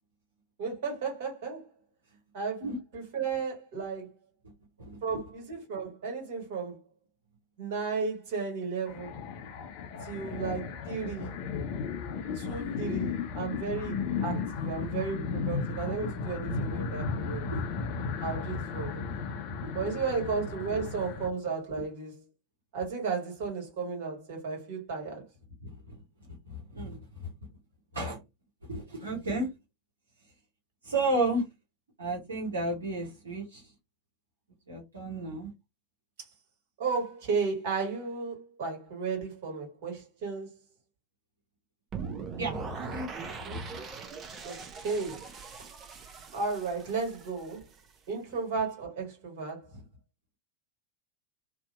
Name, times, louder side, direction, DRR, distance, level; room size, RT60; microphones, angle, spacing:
voice 1, 0.6-1.7 2.3-2.6 2.9-4.1 5.0-6.8 7.6-9.2 10.0-11.3 12.3-17.5 18.2-19.0 19.7-22.2 22.7-25.2 36.2-36.3 36.8-40.5 44.4-45.3 46.3-47.7 48.1-49.7, right 5 dB, 55° right, 1.5 m, -34 dB
voice 2, 4.8-5.2 10.2-10.6 12.7-13.1 15.8-15.9 17.5-17.7 19.1-19.2 19.6-19.9 25.6-26.0 26.3-27.3 27.9-28.2 28.6-29.5 30.8-31.5 32.0-33.7 34.7-35.5 42.4-43.8, right 2 dB, 80° right, 0.8 m, -34 dB
sound 1, 8.9-21.3, left 5 dB, 50° left, 0.5 m, -34 dB
sound 2, 41.9-48.0, right 5 dB, 30° right, 0.6 m, -41 dB
2.7 x 2.1 x 2.4 m
figure-of-eight pair, 85°, 0 cm